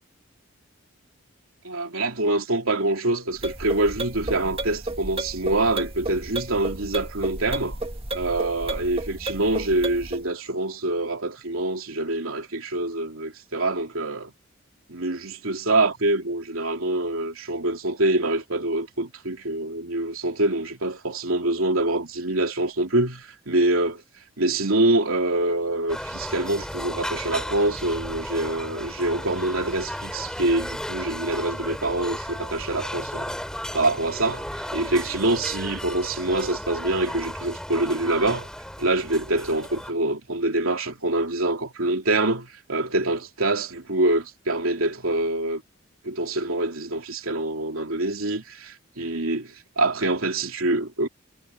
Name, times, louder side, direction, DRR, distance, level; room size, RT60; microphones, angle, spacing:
voice 1, 1.6-7.8 8.1-14.3 14.9-24.0 24.4-33.4 33.7-38.5 38.8-45.6 46.0-51.1, right 2 dB, 85° right, 3.0 m, -25 dB
sound 1, 3.3-10.2, right 2 dB, 30° right, 1.7 m, -33 dB
sound 2, 25.9-39.9, equal, 5° left, 3.7 m, -34 dB
head